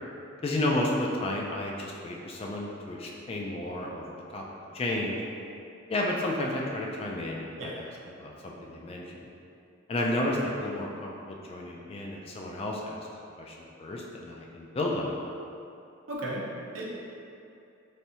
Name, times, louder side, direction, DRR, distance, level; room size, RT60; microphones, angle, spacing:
voice 1, 0.4-4.0 4.3-4.4 4.7-5.2 5.9-9.3 9.9-13.0 13.4-15.2, left 1 dB, 30° left, -1 dB, 0.3 m, -32 dB
voice 2, 7.6-7.9 16.1-17.0, right 1 dB, 75° right, -5 dB, 0.6 m, -36 dB
3.3 x 2.6 x 2.7 m, 2.6 s
head